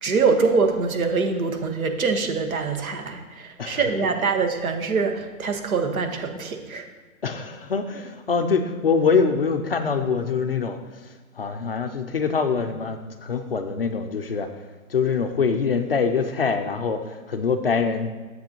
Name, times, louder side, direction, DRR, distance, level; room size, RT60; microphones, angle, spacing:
voice 1, 0.0-6.9, right 4 dB, 70° right, 5 dB, 1.5 m, -24 dB
voice 2, 7.2-10.8 11.4-14.5 14.9-18.1, left 5 dB, 45° left, 7 dB, 0.5 m, -24 dB
10.5 x 7.5 x 2.9 m, 1.3 s
hypercardioid pair, 175°, 43 cm